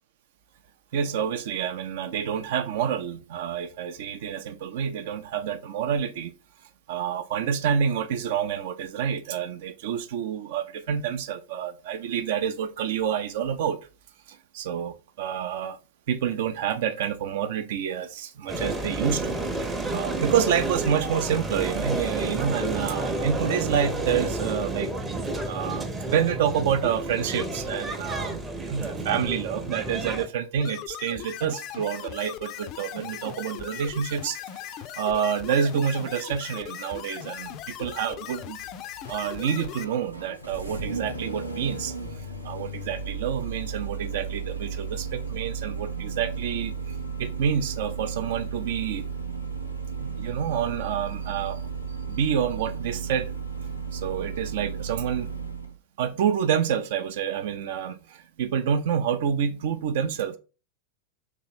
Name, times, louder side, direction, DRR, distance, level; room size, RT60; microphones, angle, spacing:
voice 1, 0.9-6.3 6.9-13.8 14.3-15.8 16.1-24.9 25.5-28.4 28.7-38.6 39.1-49.1 50.0-51.6 52.1-53.3 53.9-55.3 56.0-60.4, right 8 dB, 55° right, 0.5 m, -28 dB
sound 1, 18.5-30.3, right 2 dB, 15° right, 0.7 m, -30 dB
sound 2, 30.6-39.8, left 11 dB, 40° left, 0.4 m, -39 dB
Engine starting, 37.4-55.8, right 5 dB, 90° right, 0.7 m, -34 dB
3.2 x 2.9 x 4.3 m
figure-of-eight pair, 90°, 0 cm